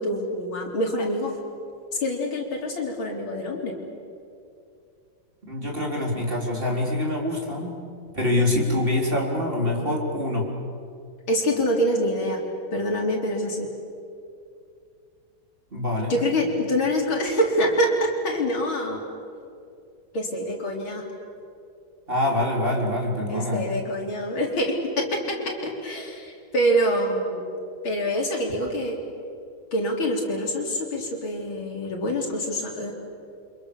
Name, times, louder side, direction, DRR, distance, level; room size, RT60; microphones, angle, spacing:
voice 1, 0.0-1.3 2.0-3.7 11.3-12.4 12.7-13.7 16.1-19.0 20.1-21.0 23.3-27.4 27.8-29.0 29.7-32.9, equal, 80° left, 0 dB, 4.5 m, -25 dB
voice 2, 5.4-7.8 8.1-10.5 15.7-16.2 22.1-23.7, left 1 dB, 25° right, -1 dB, 4.2 m, -25 dB
29.5 x 26.5 x 7.0 m, 2.4 s
omnidirectional pair, 2.2 m